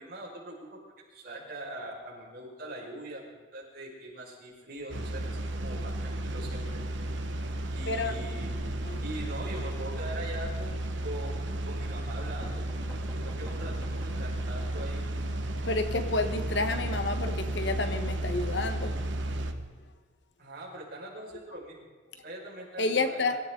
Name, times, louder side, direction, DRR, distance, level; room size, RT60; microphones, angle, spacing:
voice 1, 0.0-6.8 7.7-8.5 9.0-12.7 13.1-15.1 20.4-21.8 22.2-23.4, right 1 dB, 55° right, -4 dB, 5.6 m, -42 dB
sound 1, 4.9-19.5, right 1 dB, 80° right, 1.4 m, -33 dB
voice 2, 7.9-8.2 8.8-9.0 15.5-18.9 22.8-23.4, left 3 dB, 65° left, 8 dB, 1.3 m, -30 dB
sound 2, 12.4-15.4 16.3-19.6, equal, 10° left, 2.8 m, -48 dB
23.5 x 13.5 x 3.9 m, 1.5 s
head